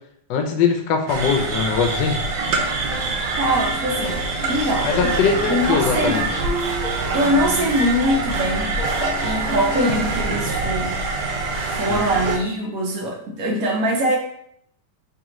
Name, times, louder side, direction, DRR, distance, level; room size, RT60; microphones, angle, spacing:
voice 1, 0.3-2.2 4.8-6.3 11.8-12.0, left 6 dB, 85° left, 4 dB, 1.3 m, -21 dB
sound 1, 1.1-12.4, right 3 dB, 80° right, 1.3 m, -25 dB
sound 2, 2.9-10.6, left 1 dB, 60° left, 1.3 m, -32 dB
voice 2, 3.4-4.2 4.5-5.2 5.5-6.2 7.1-8.9 9.2-10.9 11.8-14.2, right 1 dB, 65° right, 0 dB, 1.1 m, -22 dB
3.6 x 3.4 x 3.0 m, 0.70 s
omnidirectional pair, 1.9 m